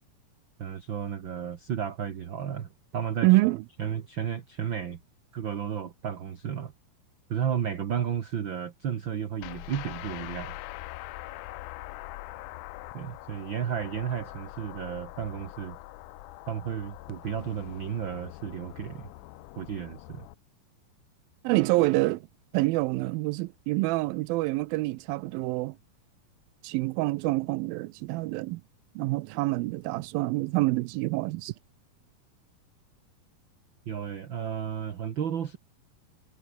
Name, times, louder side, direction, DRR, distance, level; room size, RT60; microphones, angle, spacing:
voice 1, 0.6-3.3 3.8-5.0 5.3-6.7 7.3-10.6 12.9-15.8 16.5-19.1 19.5-20.3 33.8-35.6, right 8 dB, 60° right, 1.3 m, -33 dB
voice 2, 3.2-3.6 21.4-22.3 22.5-25.8 26.6-28.6 29.0-31.6, right 21 dB, 85° right, 2.5 m, -26 dB
sound 1, 9.4-20.3, left 19 dB, 80° left, 1.8 m, -43 dB
omnidirectional pair, 4.1 m